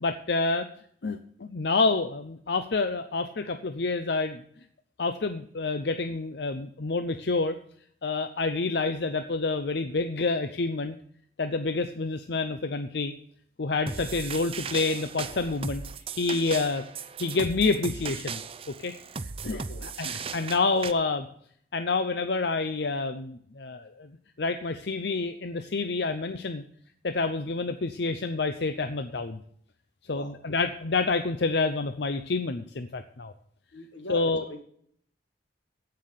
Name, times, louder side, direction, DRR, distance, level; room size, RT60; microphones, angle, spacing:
voice 1, 0.0-0.7 1.0-4.4 5.0-7.6 8.0-10.9 11.4-13.1 13.6-15.8 16.1-16.8 17.2-18.4 18.8-18.9 19.4-21.3 21.7-24.1 24.4-26.6 27.0-29.4 30.1-33.3 34.1-34.5, left 3 dB, 60° left, 8 dB, 0.7 m, -28 dB
sound 1, 13.9-20.9, right 5 dB, 30° right, 0.5 m, -37 dB
voice 2, 19.5-19.9 30.1-30.3 33.7-34.6, equal, 85° left, 5 dB, 2.0 m, -41 dB
15.0 x 5.7 x 6.7 m, 0.65 s
head